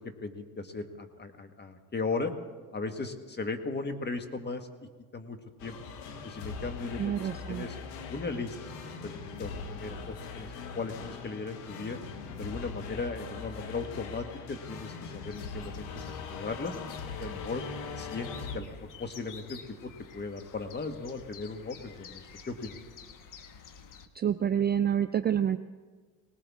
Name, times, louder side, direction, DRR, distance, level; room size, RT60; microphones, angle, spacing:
voice 1, 0.0-2.3 2.7-4.7 5.1-5.7 6.2-7.8 8.1-10.5 10.7-12.0 12.4-16.8 17.2-17.6 18.0-22.8, left 3 dB, 25° left, 7 dB, 1.6 m, -37 dB
sound 1, 5.6-18.6, left 5 dB, 90° left, 1.4 m, -41 dB
voice 2, 7.0-7.7 24.1-25.6, right 9 dB, 25° right, 10 dB, 0.4 m, -27 dB
sound 2, 15.3-24.1, left 7 dB, 50° left, 1.3 m, -50 dB
19.5 x 19.0 x 3.6 m, 1.4 s
supercardioid pair, 90°, 41 cm